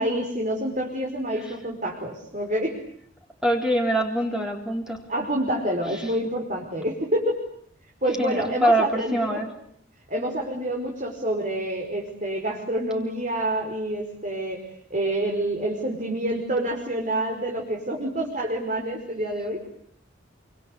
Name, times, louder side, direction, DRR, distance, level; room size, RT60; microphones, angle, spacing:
voice 1, 0.0-2.8 5.1-7.4 8.0-9.4 10.1-19.6, right 1 dB, 40° right, 1 dB, 5.3 m, -27 dB
voice 2, 3.4-5.0 8.2-9.5, right 1 dB, 5° right, 2 dB, 3.5 m, -24 dB
27.5 x 25.5 x 8.3 m, 0.64 s
head